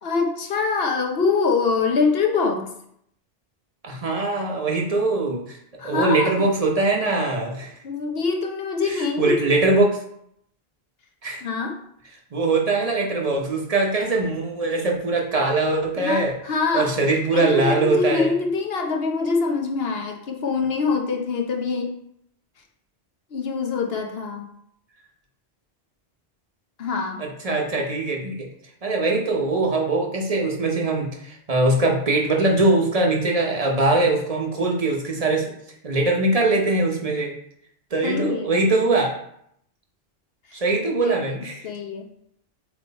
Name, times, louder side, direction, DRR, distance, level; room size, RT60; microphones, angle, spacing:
voice 1, 0.0-2.6 5.8-6.3 7.8-9.4 11.4-11.8 16.0-16.9 17.3-21.9 23.3-24.4 26.8-27.2 38.0-38.5 41.0-41.1 41.6-42.1, left 4 dB, 75° left, 2 dB, 1.2 m, -24 dB
voice 2, 3.8-5.6 5.8-7.7 8.8-10.0 11.2-11.4 12.3-16.3 16.7-18.3 27.2-28.5 28.8-35.4 35.8-37.3 37.9-39.1 40.5-41.7, right 2 dB, 40° right, 1 dB, 1.1 m, -22 dB
8.0 x 3.1 x 4.1 m, 0.72 s
omnidirectional pair, 1.0 m